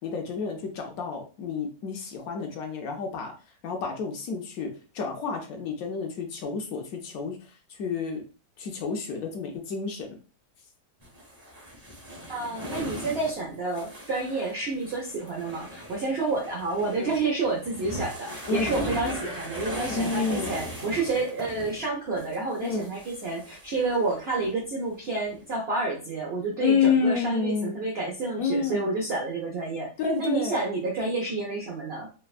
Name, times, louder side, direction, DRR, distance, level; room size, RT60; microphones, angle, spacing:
voice 1, 0.0-3.3 3.6-8.2 8.6-10.2 16.9-17.1 18.5-18.7 19.9-20.5 22.6-22.9 26.6-27.8 28.4-28.9 30.0-30.6, left 5 dB, 70° left, 3 dB, 0.9 m, -29 dB
sound 1, 11.0-21.9 22.1-24.5 24.8-24.9, equal, 20° right, 0.6 m, -38 dB
voice 2, 12.3-29.9 30.2-32.1, right 3 dB, 85° right, -1 dB, 0.5 m, -29 dB
3.3 x 2.0 x 2.3 m, 0.35 s
omnidirectional pair, 1.8 m